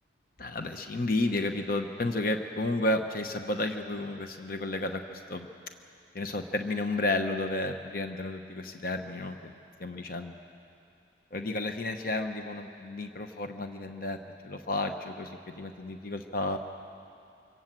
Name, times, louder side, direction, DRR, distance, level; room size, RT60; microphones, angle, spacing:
voice 1, 0.4-5.5 6.1-9.5 9.8-10.3 11.3-14.2 14.4-16.6, left 2 dB, 50° left, 6 dB, 1.0 m, -32 dB
25.0 x 17.5 x 7.6 m, 2.6 s
head